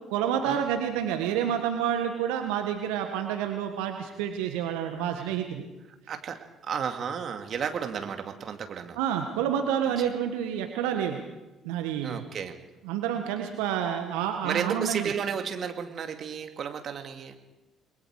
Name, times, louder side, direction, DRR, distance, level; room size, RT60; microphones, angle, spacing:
voice 1, 0.1-5.6 9.0-11.2 11.6-12.2 12.8-15.1, right 9 dB, 75° right, 5 dB, 1.7 m, -29 dB
voice 2, 6.1-9.0 10.0-10.1 12.0-12.6 14.4-17.4, right 7 dB, 50° right, 6 dB, 2.3 m, -33 dB
29.5 x 21.5 x 4.9 m, 1.0 s
hypercardioid pair, 50°, 0 cm